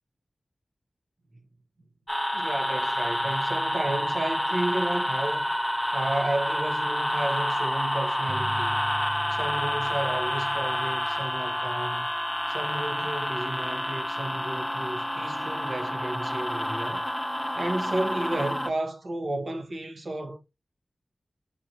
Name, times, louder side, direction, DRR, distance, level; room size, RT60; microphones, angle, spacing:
sound 1, 2.1-18.7, equal, 5° left, 0.4 m, -29 dB
voice 1, 2.3-5.5 5.9-8.8 9.3-12.1 12.5-17.1 17.5-20.4, right 1 dB, 70° right, 1.0 m, -32 dB
sound 2, 8.3-13.4, right 1 dB, 50° right, 0.4 m, -42 dB
6.8 x 2.6 x 2.9 m
wide cardioid pair, 65°, 0 cm